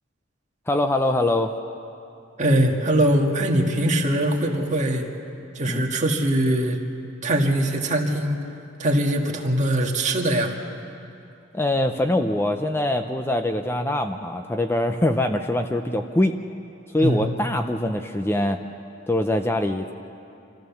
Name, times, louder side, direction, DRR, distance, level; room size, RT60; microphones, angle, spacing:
voice 1, 0.7-1.5 5.7-5.9 11.5-16.3 16.9-18.6 19.1-19.9, left 1 dB, 10° left, 6 dB, 0.5 m, -23 dB
voice 2, 2.4-5.1 5.6-6.8 7.2-8.4 8.8-10.5 17.0-17.4, right 1 dB, 40° right, 0 dB, 1.8 m, -22 dB
26.5 x 14.0 x 7.1 m, 2.7 s
head